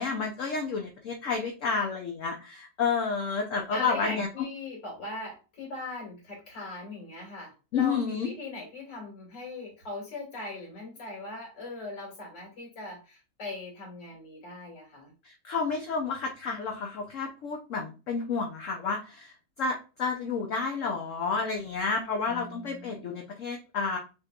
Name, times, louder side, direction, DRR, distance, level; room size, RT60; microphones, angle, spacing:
voice 1, 0.0-4.3 7.7-8.3 15.2-19.3 19.6-24.0, left 5 dB, 55° left, 2 dB, 0.9 m, -30 dB
voice 2, 3.7-15.1 22.2-23.1, left 2 dB, 75° left, -2 dB, 3.1 m, -40 dB
6.7 x 3.1 x 2.4 m, 0.32 s
omnidirectional pair, 1.9 m